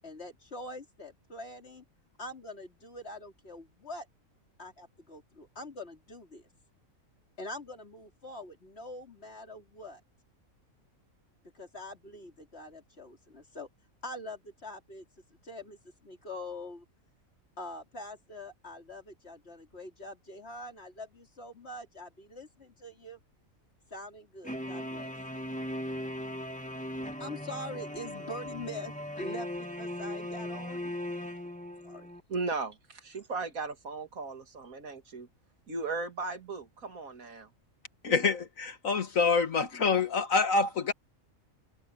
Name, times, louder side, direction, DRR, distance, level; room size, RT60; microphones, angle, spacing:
voice 1, 0.0-1.8 2.2-4.1 4.6-6.5 7.4-10.0 11.5-13.7 14.0-15.1 15.4-16.9 17.6-23.2 23.9-25.1 27.2-30.9 31.8-32.1, left 1 dB, 50° left, 3.7 m, -44 dB
sound 1, 24.4-32.2, left 1 dB, 5° left, 1.7 m, -38 dB
voice 2, 32.3-35.3 35.7-37.5, right 3 dB, 85° right, 2.5 m, -36 dB
voice 3, 38.0-40.9, left 4 dB, 75° left, 2.2 m, -26 dB
omnidirectional pair, 1.4 m